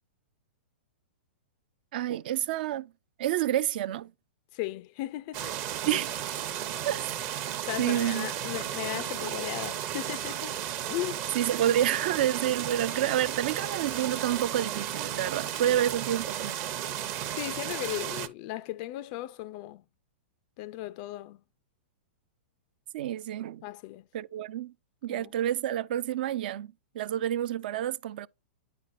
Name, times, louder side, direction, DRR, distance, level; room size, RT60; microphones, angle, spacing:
voice 1, 1.9-2.9 3.2-4.1 5.9-6.1 6.9-7.1 7.8-8.3 11.3-16.6 22.9-23.6 24.1-24.7 25.0-28.3, right 11 dB, 55° right, 0.4 m, -29 dB
voice 2, 4.5-5.5 5.9-6.0 7.7-10.5 10.9-11.4 17.3-19.8 20.6-21.4 23.6-24.0 25.1-25.3, left 15 dB, 45° left, 0.3 m, -36 dB
sound 1, 5.3-18.3, right 10 dB, 40° right, 0.7 m, -34 dB
10.5 x 4.2 x 2.5 m
hypercardioid pair, 115°, 6 cm